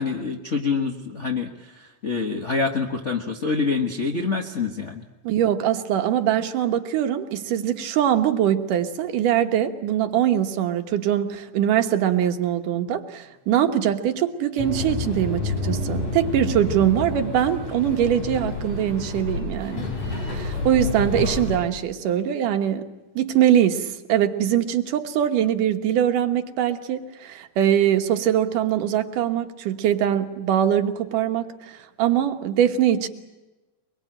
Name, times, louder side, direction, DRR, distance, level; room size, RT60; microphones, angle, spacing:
voice 1, 0.0-5.0, left 4 dB, 80° left, 4 dB, 0.6 m, -26 dB
voice 2, 5.2-19.9 20.2-22.9 23.2-33.1, right 10 dB, 90° right, 6 dB, 2.9 m, -22 dB
sound 1, 14.6-21.6, left 3 dB, 65° left, 6.8 m, -29 dB
23.5 x 22.5 x 8.9 m, 1.1 s
omnidirectional pair, 3.6 m